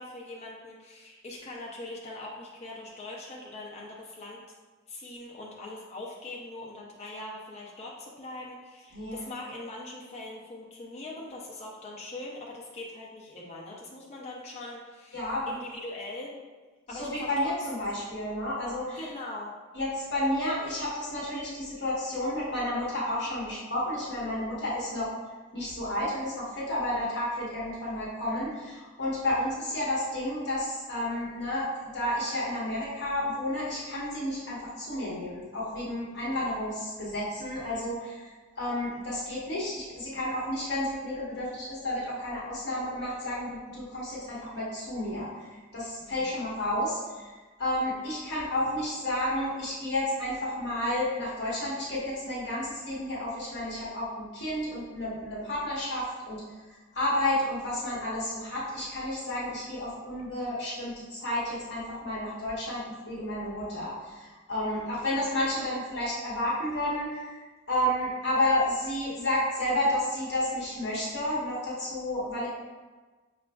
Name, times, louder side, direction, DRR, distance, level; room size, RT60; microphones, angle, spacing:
voice 1, 0.0-4.4 4.9-15.2 15.5-16.3 16.9-17.5 19.0-19.5 36.1-36.4 46.0-46.3, left 2 dB, 30° left, -3 dB, 0.4 m, -42 dB
voice 2, 15.1-15.5 16.9-19.0 19.7-25.1 25.5-31.6 31.9-38.3 38.6-45.3 45.7-56.4 56.7-67.4 67.7-72.5, left 1 dB, 55° left, -7 dB, 1.1 m, -31 dB
5.8 x 2.3 x 2.3 m, 1.3 s
head